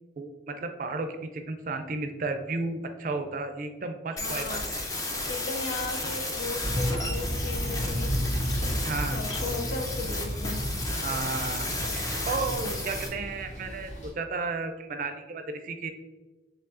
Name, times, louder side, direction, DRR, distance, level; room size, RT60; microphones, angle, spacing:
voice 1, 0.2-4.9 8.8-9.2 10.9-11.7 11.9-15.9, right 3 dB, 45° right, 6 dB, 0.4 m, -33 dB
voice 2, 4.1-4.6 5.3-8.2 8.6-8.7 9.1-10.6, left 3 dB, 85° left, 6 dB, 0.4 m, -36 dB
sound 1, 4.2-13.1, left 2 dB, 20° left, 0.5 m, -33 dB
sound 2, 6.6-14.1, equal, 40° left, 1.1 m, -32 dB
4.6 x 3.2 x 2.5 m, 1.2 s
head